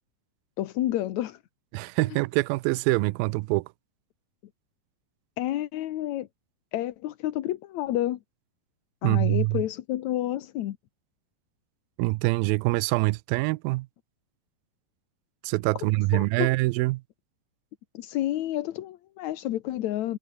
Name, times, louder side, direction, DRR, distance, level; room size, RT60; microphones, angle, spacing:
voice 1, 0.6-1.4 5.4-6.3 6.7-8.2 9.0-10.8 16.1-16.5 17.9-20.2, left 13 dB, 65° left, 1.9 m, -29 dB
voice 2, 1.7-3.7 9.0-9.6 12.0-13.9 15.4-17.0, right 22 dB, 80° right, 2.3 m, -25 dB
omnidirectional pair, 4.3 m